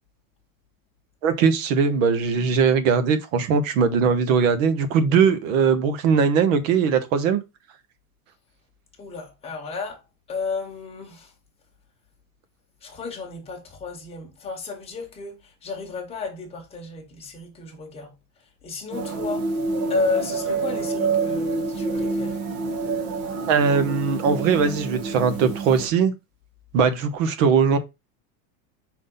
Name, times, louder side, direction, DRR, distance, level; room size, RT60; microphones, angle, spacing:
voice 1, 1.2-7.4 23.5-26.1 26.7-27.8, right 6 dB, 60° right, 1.3 m, -20 dB
voice 2, 9.0-10.0 10.3-11.3 12.8-18.1 18.6-19.5 19.9-22.4, left 5 dB, 15° left, 1.5 m, -32 dB
sound 1, 18.9-25.9, right 4 dB, 35° right, 1.1 m, -27 dB
5.0 x 4.0 x 5.4 m
supercardioid pair, 175°, 44 cm